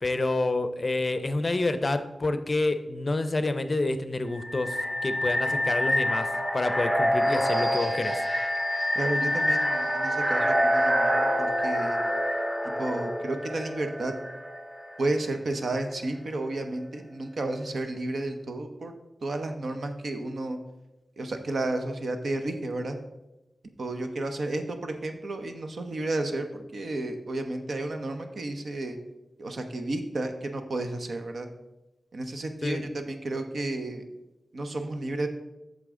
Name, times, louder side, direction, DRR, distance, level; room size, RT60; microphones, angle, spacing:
voice 1, 0.0-8.2 32.6-32.8, left 2 dB, 40° left, 11 dB, 0.5 m, -28 dB
sound 1, 4.3-15.1, equal, 15° right, 1.8 m, -26 dB
voice 2, 8.9-12.0 12.8-14.1 15.0-18.9 19.2-20.6 21.2-23.0 23.8-29.0 29.4-31.5 32.1-34.0 34.5-35.3, right 2 dB, 70° right, 6 dB, 0.9 m, -32 dB
8.4 x 6.5 x 3.7 m, 0.98 s
wide cardioid pair, 95°, 0 cm